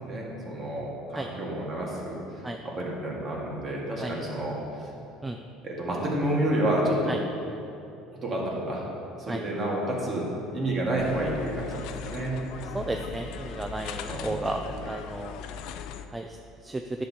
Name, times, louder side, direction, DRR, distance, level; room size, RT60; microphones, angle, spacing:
voice 1, 0.0-2.2 2.6-4.6 5.6-7.1 8.2-8.8 9.2-12.4 12.8-13.2 14.0-14.8, right 1 dB, 35° right, -3 dB, 2.3 m, -30 dB
sound 1, 11.0-16.1, left 8 dB, 70° left, 0.5 m, -39 dB
voice 2, 12.7-15.3 16.1-16.3 16.6-16.8, right 2 dB, 15° right, 5 dB, 0.4 m, -33 dB
10.5 x 7.0 x 4.3 m, 2.9 s
cardioid pair, 120°, 0 cm